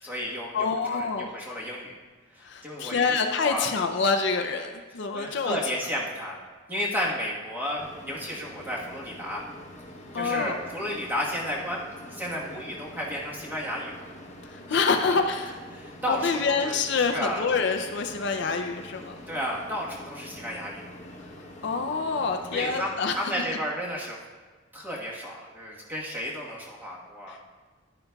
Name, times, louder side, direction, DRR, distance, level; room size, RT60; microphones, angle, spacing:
voice 1, 0.0-2.0 2.3-3.7 5.1-6.4 6.7-9.4 10.1-14.0 14.7-15.2 15.7-16.8 17.1-17.4 19.3-20.9 22.5-24.3 24.7-27.5, equal, 10° right, -4 dB, 1.3 m, -33 dB
voice 2, 0.5-1.3 2.4-5.6 10.1-10.6 14.4-15.5 16.1-19.2 21.6-23.5 27.3-27.4, left 4 dB, 55° left, 5 dB, 0.5 m, -27 dB
sound 1, 7.8-22.8, left 1 dB, 35° left, 0.9 m, -45 dB
11.0 x 9.5 x 2.3 m, 1.4 s
head